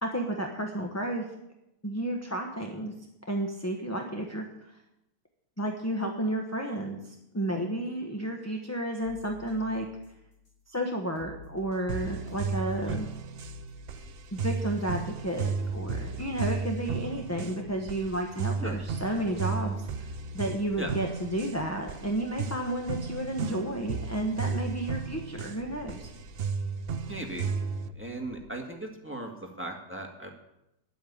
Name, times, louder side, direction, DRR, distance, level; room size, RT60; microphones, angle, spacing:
voice 1, 0.0-1.2 1.8-2.9 3.3-4.5 5.6-9.9 10.7-13.1 14.3-19.9 20.3-26.1, right 1 dB, 10° left, 2 dB, 0.9 m, -32 dB
sound 1, 9.0-10.6 11.2-15.1 15.6-16.5, left 4 dB, 90° left, 4.3 m, -50 dB
sound 2, 11.9-27.9, right 5 dB, 75° right, 0.5 m, -34 dB
sound 3, 14.6-28.5, left 1 dB, 50° left, 2.2 m, -50 dB
voice 2, 27.1-27.5 28.0-30.3, right 1 dB, 5° right, 1 dB, 1.8 m, -37 dB
10.5 x 8.9 x 8.6 m, 0.86 s
omnidirectional pair, 1.9 m